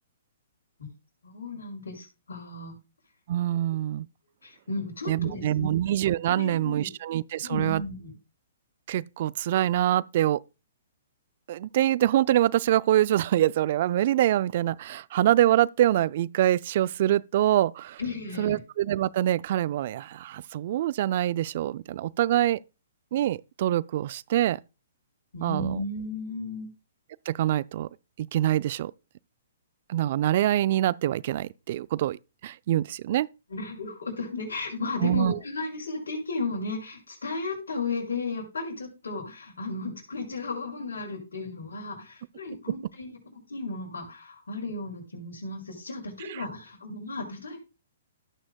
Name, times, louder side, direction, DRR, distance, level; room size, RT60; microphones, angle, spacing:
voice 1, 1.2-2.7 4.4-5.7 6.3-6.9 7.4-8.1 18.0-18.6 25.3-26.7 33.5-47.6, left 3 dB, 75° left, 5.9 m, -34 dB
voice 2, 3.3-4.1 5.1-7.8 8.9-10.4 11.5-18.0 18.4-22.6 23.1-24.6 25.4-25.8 27.3-27.9 28.2-28.9 29.9-33.3 35.0-35.3 46.3-46.4, right 12 dB, 50° right, 0.4 m, -25 dB
17.0 x 6.2 x 2.2 m
hypercardioid pair, 130°, 0 cm